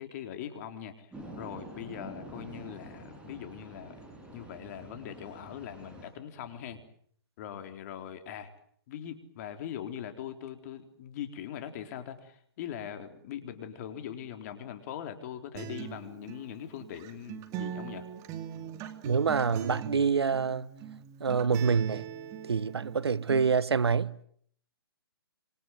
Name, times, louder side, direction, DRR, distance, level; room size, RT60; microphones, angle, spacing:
voice 1, 0.0-4.0 4.3-6.8 7.4-8.5 8.9-18.1, left 9 dB, 40° left, 4.0 m, -41 dB
sound 1, 1.1-6.1, right 1 dB, 10° right, 7.7 m, -47 dB
Acoustic guitar, 15.5-23.5, right 9 dB, 25° right, 2.4 m, -41 dB
voice 2, 19.0-20.7 21.2-22.1 22.4-24.1, right 5 dB, 85° right, 1.3 m, -26 dB
26.5 x 26.5 x 7.8 m
hypercardioid pair, 140°, 13 cm